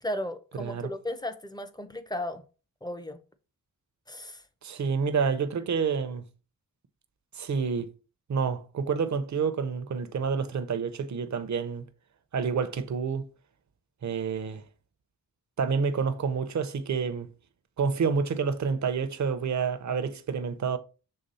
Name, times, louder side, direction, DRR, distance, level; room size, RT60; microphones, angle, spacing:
voice 1, 0.0-2.4 2.8-3.2 4.1-4.4, left 1 dB, 10° left, 0.5 m, -35 dB
voice 2, 0.6-0.9 4.6-6.2 7.3-7.9 8.3-11.8 12.3-13.3 14.0-14.6 15.6-17.3 17.8-20.8, right 5 dB, 55° right, 0.7 m, -28 dB
6.7 x 3.6 x 4.1 m
wide cardioid pair, 165°, 35 cm